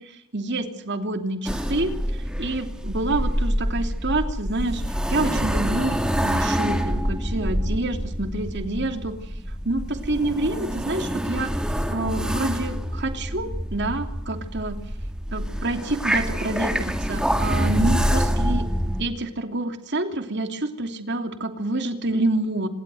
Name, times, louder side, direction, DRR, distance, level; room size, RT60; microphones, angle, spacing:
voice 1, 0.0-9.3 9.6-11.5 11.9-14.8 15.3-18.7 19.0-22.7, right 2 dB, 50° right, 7 dB, 2.9 m, -28 dB
sound 1, 1.5-19.0, equal, 5° right, 2.0 m, -26 dB
26.5 x 22.0 x 6.3 m, 0.80 s
head